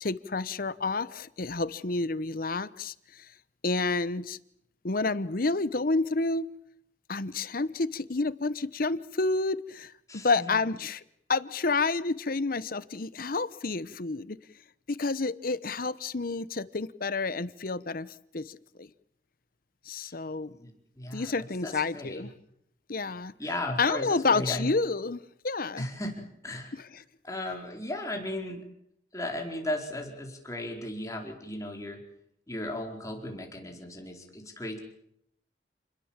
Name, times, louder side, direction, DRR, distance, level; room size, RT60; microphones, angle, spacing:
voice 1, 0.0-3.3 3.6-4.4 4.8-6.5 7.1-11.0 11.3-14.4 14.9-18.9 19.9-20.6 21.1-22.3 22.9-23.3 23.8-25.8 26.7-27.0, left 3 dB, 50° left, 16 dB, 0.9 m, -29 dB
voice 2, 10.1-10.6 20.0-20.2 20.5-20.7 21.0-22.3 23.4-24.7 25.8-26.7 27.2-28.6 29.1-32.0 32.5-34.8, left 1 dB, 20° left, 2 dB, 4.5 m, -36 dB
29.0 x 21.0 x 7.4 m, 0.74 s
head